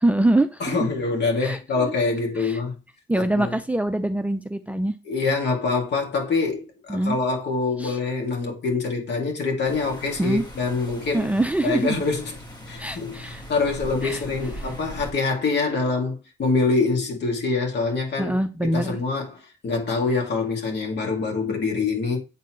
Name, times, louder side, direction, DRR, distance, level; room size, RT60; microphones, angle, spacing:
voice 1, 0.0-0.9 1.4-1.9 2.4-2.6 3.1-5.0 6.9-7.2 7.8-8.0 10.2-10.4 11.1-12.0 12.8-13.4 14.0-14.2 14.6-14.7 18.2-19.0, right 1 dB, 5° right, 0.5 m, -24 dB
voice 2, 0.6-2.8 3.1-3.5 5.1-11.3 11.6-12.3 12.7-18.3 18.7-22.2, left 4 dB, 60° left, 2.5 m, -25 dB
sound 1, 9.6-15.1, equal, 20° left, 1.7 m, -39 dB
8.2 x 4.3 x 3.1 m
cardioid pair, 90°, 20 cm